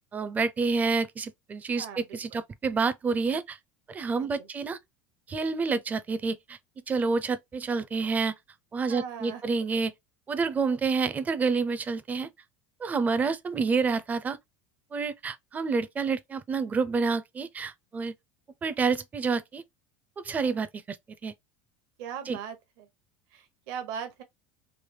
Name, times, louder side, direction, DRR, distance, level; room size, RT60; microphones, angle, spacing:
voice 1, 0.0-3.6 3.9-4.8 5.3-6.6 6.9-8.3 8.7-9.9 10.3-12.3 12.8-14.4 14.9-18.1 18.6-19.6 20.2-21.0 21.2-21.3 22.3-22.4, right 4 dB, 20° right, 0.4 m, -28 dB
voice 2, 1.7-2.2 4.2-4.5 8.8-9.4 22.0-22.9 23.3-24.2, right 8 dB, 70° right, 0.9 m, -39 dB
3.3 x 2.1 x 3.2 m
supercardioid pair, 120°, 7 cm